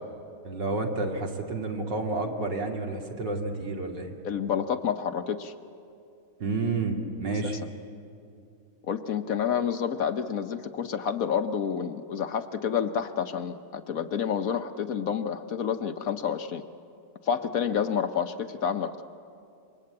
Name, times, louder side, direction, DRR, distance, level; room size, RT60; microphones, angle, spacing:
voice 1, 0.4-4.1 6.4-7.6, right 3 dB, 80° right, 1 dB, 3.1 m, -30 dB
voice 2, 4.2-5.5 7.4-7.6 8.9-16.6 17.2-19.0, left 7 dB, 60° left, 8 dB, 1.1 m, -29 dB
27.0 x 24.0 x 8.6 m, 2.6 s
omnidirectional pair, 1.9 m